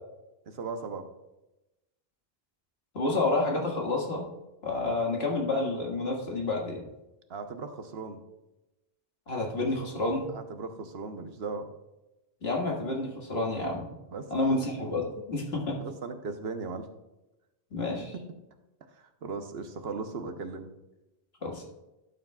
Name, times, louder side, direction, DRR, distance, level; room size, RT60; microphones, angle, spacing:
voice 1, 0.5-1.1 7.3-8.2 10.3-11.7 14.1-14.6 15.8-16.9 18.1-18.4 18.9-20.7, right 4 dB, 75° right, 7 dB, 1.1 m, -37 dB
voice 2, 2.9-4.2 4.6-6.8 9.3-10.3 12.4-13.9 14.3-15.0 15.3-15.8 17.7-18.1 21.4-21.6, left 2 dB, 80° left, -1 dB, 2.0 m, -29 dB
12.0 x 7.2 x 2.3 m, 0.98 s
omnidirectional pair, 1.0 m